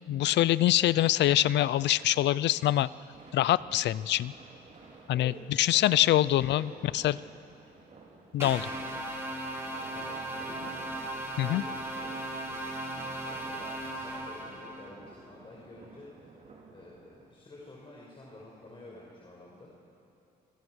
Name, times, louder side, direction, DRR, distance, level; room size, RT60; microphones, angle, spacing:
voice 1, 0.1-2.9 3.3-4.3 5.1-5.3 5.6-7.2 8.3-8.7 11.4-11.6, left 14 dB, 80° left, 19 dB, 0.6 m, -24 dB
sound 1, 1.2-17.3, right 3 dB, 45° right, 5.2 m, -53 dB
voice 2, 6.4-6.9 9.9-10.7 11.3-12.9 13.3-16.3 16.7-19.7, left 2 dB, 30° left, -4 dB, 5.6 m, -50 dB
sound 2, 8.4-14.9, right 1 dB, 15° right, 3.8 m, -37 dB
28.0 x 25.5 x 6.3 m, 2.9 s
cardioid pair, 115°, 18 cm